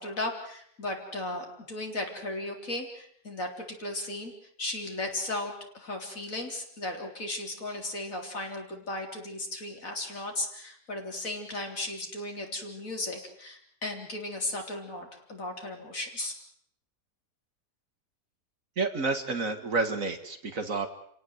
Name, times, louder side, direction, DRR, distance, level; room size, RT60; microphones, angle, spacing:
voice 1, 0.0-4.3 4.6-16.3, left 2 dB, 50° left, 2 dB, 4.2 m, -36 dB
voice 2, 18.8-20.9, right 3 dB, 50° right, 8 dB, 2.1 m, -29 dB
29.0 x 17.5 x 7.9 m, 0.68 s
omnidirectional pair, 1.8 m